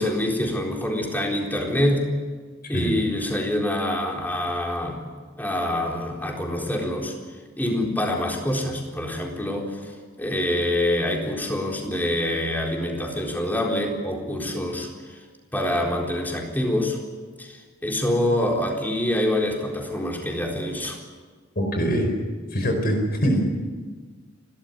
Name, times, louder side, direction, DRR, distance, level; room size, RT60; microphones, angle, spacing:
voice 1, 0.0-2.2 2.7-5.1 5.4-7.1 7.6-15.2 15.5-17.0 17.4-21.0, left 1 dB, 10° left, 0 dB, 4.1 m, -26 dB
voice 2, 21.5-22.1 22.5-23.4, equal, 50° left, 4 dB, 4.9 m, -23 dB
30.0 x 13.5 x 9.7 m, 1.4 s
head